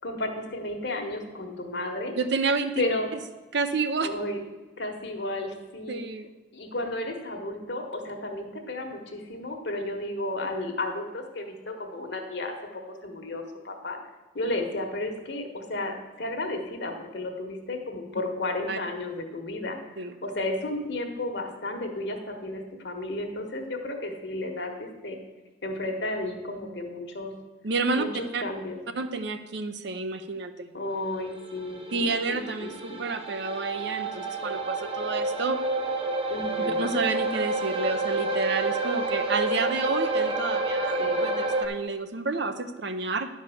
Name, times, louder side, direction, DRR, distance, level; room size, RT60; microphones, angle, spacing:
voice 1, 0.0-2.1 2.8-3.1 4.0-4.4 4.8-6.0 6.5-14.0 14.3-25.2 25.6-27.3 28.0-28.1 28.4-28.8 30.7-33.1 36.3-36.9 41.0-41.2, left 2 dB, 60° left, 4 dB, 1.4 m, -33 dB
voice 2, 2.2-2.8 3.5-4.1 5.9-6.3 18.7-18.8 20.0-20.1 27.6-28.0 28.3-28.4 28.9-30.7 31.9-35.6 36.8-43.3, right 3 dB, 60° right, 9 dB, 0.7 m, -29 dB
sound 1, 31.3-41.7, right 2 dB, 30° right, 0.9 m, -29 dB
10.5 x 4.8 x 7.1 m, 1.2 s
head